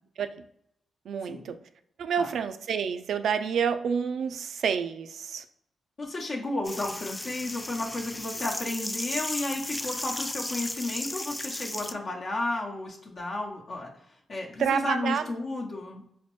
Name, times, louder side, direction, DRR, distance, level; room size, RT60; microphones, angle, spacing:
voice 1, 1.1-1.5 2.0-5.4 11.8-11.9 14.6-15.2, right 7 dB, 75° right, 9 dB, 0.3 m, -28 dB
voice 2, 6.0-13.9 14.3-16.0, left 2 dB, 60° left, -2 dB, 0.9 m, -33 dB
sound 1, 6.6-11.9, left 1 dB, 15° left, 0.3 m, -35 dB
4.2 x 2.0 x 3.0 m, 0.71 s
cardioid pair, 60°, 0 cm